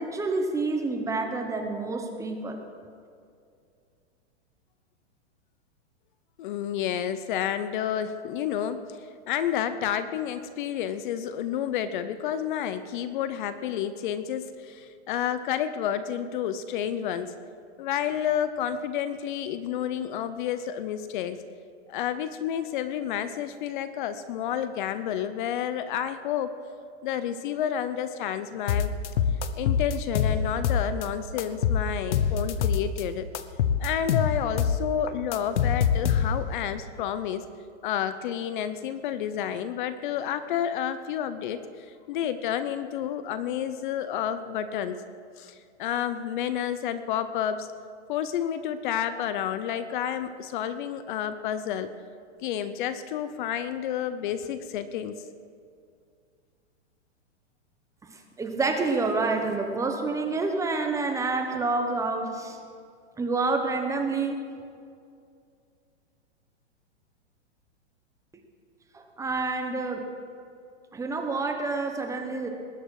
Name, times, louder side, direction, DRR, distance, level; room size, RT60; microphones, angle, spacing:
voice 1, 0.0-2.6 58.0-62.6 63.2-64.4 68.9-70.1 70.9-72.5, right 3 dB, 10° right, 4 dB, 1.0 m, -28 dB
voice 2, 6.4-9.0 9.3-17.3 17.8-21.4 21.9-26.5 27.0-28.9 29.6-33.3 33.8-37.4 37.8-45.0 45.4-47.7 48.1-52.0 52.4-55.1, left 9 dB, 45° left, 12 dB, 0.7 m, -30 dB
sound 1, 28.7-31.1 31.4-33.0 33.3-36.6, left 8 dB, 80° left, 1.0 m, -25 dB
20.0 x 10.0 x 4.8 m, 2.3 s
hypercardioid pair, 150°, 35 cm